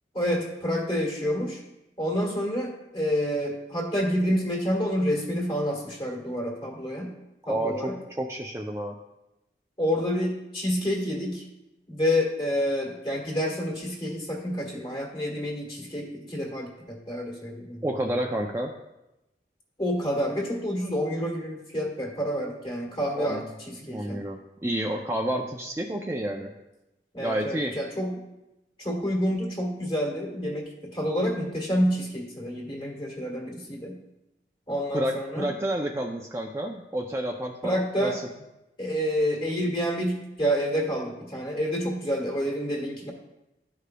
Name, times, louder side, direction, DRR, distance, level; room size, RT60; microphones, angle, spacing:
voice 1, 0.1-1.6 2.0-7.1 7.5-8.0 9.8-11.4 11.9-17.8 19.8-24.2 27.1-28.2 28.8-34.0 34.7-35.5 37.6-38.2 38.8-43.1, equal, 30° left, -1 dB, 1.5 m, -28 dB
voice 2, 7.4-7.9 8.2-8.9 17.8-18.7 23.1-23.4 23.8-26.5 27.2-27.8 34.9-38.2, right 1 dB, 15° right, 1 dB, 0.3 m, -30 dB
12.5 x 4.9 x 2.3 m, 0.94 s
head